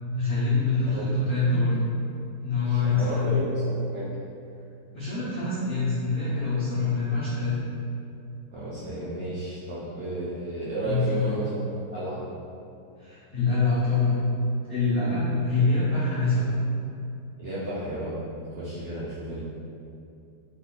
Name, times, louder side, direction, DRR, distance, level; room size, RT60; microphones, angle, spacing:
voice 1, 0.1-1.7 2.4-3.4 4.9-7.6 10.8-11.2 13.0-14.2 14.7-16.5, left 3 dB, 75° left, -10 dB, 0.5 m, -25 dB
voice 2, 2.6-4.1 8.5-11.6 11.9-12.2 17.4-19.4, right 1 dB, 60° right, -11 dB, 0.7 m, -33 dB
3.6 x 3.4 x 2.2 m, 2.6 s
omnidirectional pair, 1.9 m